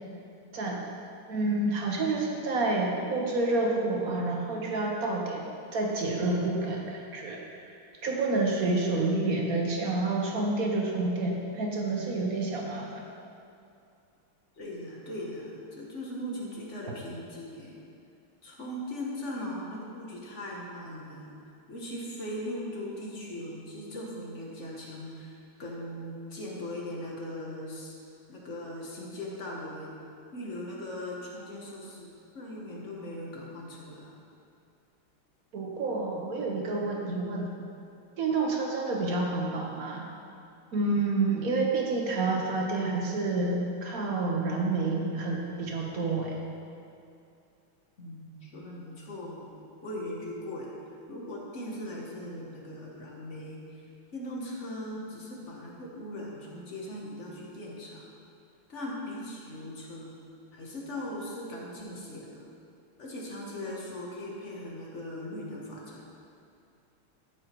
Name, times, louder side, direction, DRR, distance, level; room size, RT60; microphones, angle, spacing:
voice 1, 1.3-5.4 5.7-13.0 35.5-37.5 38.2-40.1 40.7-46.4, right 3 dB, 55° right, 0 dB, 1.0 m, -29 dB
voice 2, 14.6-17.8 18.4-21.3 21.7-27.9 28.3-29.9 30.3-34.1 48.0-49.5 49.8-50.7 51.1-53.8 54.1-58.0 58.7-60.2 60.5-62.4 63.0-66.0, left 1 dB, 40° left, -3 dB, 1.4 m, -39 dB
13.0 x 5.1 x 4.5 m, 2.6 s
omnidirectional pair, 2.4 m